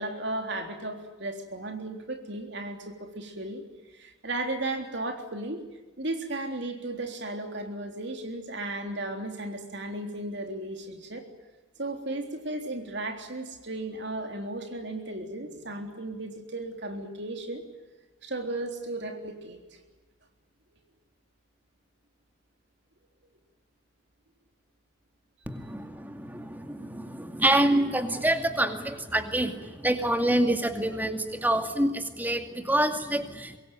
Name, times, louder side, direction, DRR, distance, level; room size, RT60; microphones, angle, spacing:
voice 1, 0.0-3.6 3.9-5.6 6.0-11.2 11.8-17.6 18.2-19.8, right 2 dB, 55° right, 4 dB, 3.6 m, -35 dB
voice 2, 25.5-33.6, right 1 dB, 10° right, 7 dB, 2.3 m, -27 dB
25.5 x 22.5 x 9.3 m, 1.2 s
head